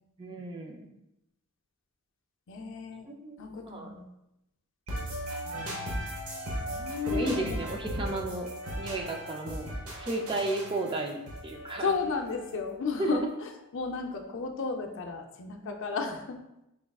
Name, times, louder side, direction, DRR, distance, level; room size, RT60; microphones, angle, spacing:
voice 1, 0.2-0.8 3.1-3.9 5.5-5.9 7.1-8.5 8.8-11.2 11.4-11.9 13.0-13.3, right 2 dB, 25° right, 2 dB, 0.4 m, -34 dB
voice 2, 2.5-3.0 3.4-4.1 5.6-6.1 6.7-7.6 11.8-16.4, left 4 dB, 60° left, 3 dB, 0.5 m, -33 dB
sound 1, 4.9-12.7, equal, 80° right, 1.1 m, -37 dB
4.7 x 3.5 x 2.3 m, 0.87 s
head